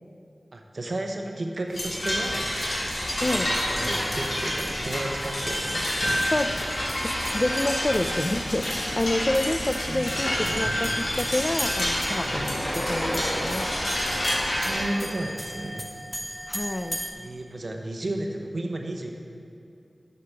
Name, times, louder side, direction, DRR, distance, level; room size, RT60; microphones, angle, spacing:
voice 1, 0.5-2.5 3.2-3.4 3.7-6.3 9.9-10.7 12.1-12.8 14.0-14.1 14.5-15.9 17.2-19.1, right 1 dB, 60° right, 3 dB, 0.9 m, -33 dB
sound 1, 1.7-14.8, left 1 dB, 60° left, 2.2 m, -28 dB
sound 2, 2.3-17.1, equal, ahead, 0.7 m, -39 dB
sound 3, 3.0-4.9 6.8-8.8 11.8-14.5, equal, 15° left, 2.0 m, -34 dB
voice 2, 3.2-3.5 6.3-6.5 7.0-10.9 11.2-13.7 16.5-17.0, left 1 dB, 35° left, 9 dB, 0.3 m, -28 dB
8.0 x 5.8 x 5.8 m, 2.5 s
wide cardioid pair, 65°, 0 cm